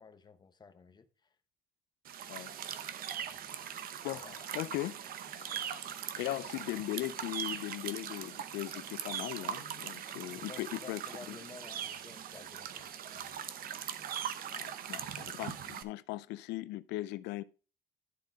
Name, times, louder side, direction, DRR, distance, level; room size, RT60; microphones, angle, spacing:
voice 1, 0.0-1.3 3.2-3.7 4.1-4.4 10.3-13.5, left 5 dB, 25° left, 0.9 m, -53 dB
sound 1, 2.0-15.8, right 9 dB, 60° right, 0.8 m, -41 dB
voice 2, 4.0-5.0 5.4-5.8 6.2-11.0 11.3-11.4 14.5-17.4, left 16 dB, 85° left, 0.5 m, -39 dB
11.5 x 3.8 x 5.1 m
cardioid pair, 110°, 17 cm